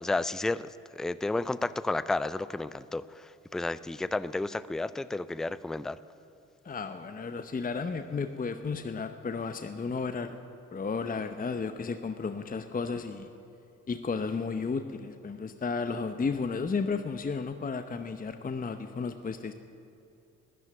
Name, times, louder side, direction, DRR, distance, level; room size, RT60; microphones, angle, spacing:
voice 1, 0.0-0.6 0.9-6.0, left 2 dB, ahead, 16 dB, 0.4 m, -32 dB
voice 2, 6.6-10.4 10.7-13.3 13.9-19.5, left 4 dB, 25° left, 9 dB, 0.8 m, -33 dB
13.5 x 10.5 x 9.3 m, 2.6 s
hypercardioid pair, 45°, 37 cm